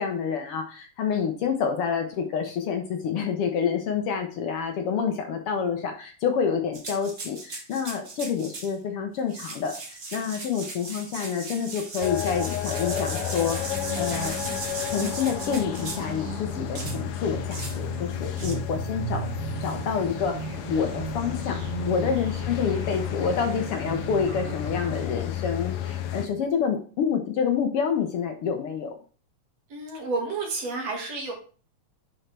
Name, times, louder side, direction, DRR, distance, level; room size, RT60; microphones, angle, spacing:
voice 1, 0.0-14.4 14.8-19.3 19.6-20.4 20.7-21.6 21.9-29.0, left 6 dB, 65° left, 4 dB, 1.5 m, -28 dB
sound 1, 6.7-8.7 9.2-16.2 16.7-17.0 17.5-17.8 18.3-18.5, right 3 dB, 35° right, 1.3 m, -37 dB
sound 2, 12.0-26.3, left 10 dB, 80° left, 1.3 m, -32 dB
sound 3, 13.7-25.0, right 9 dB, 90° right, 1.3 m, -38 dB
voice 2, 29.7-31.3, right 3 dB, 60° right, 0 dB, 3.1 m, -30 dB
10.0 x 4.7 x 3.4 m, 0.39 s
omnidirectional pair, 3.4 m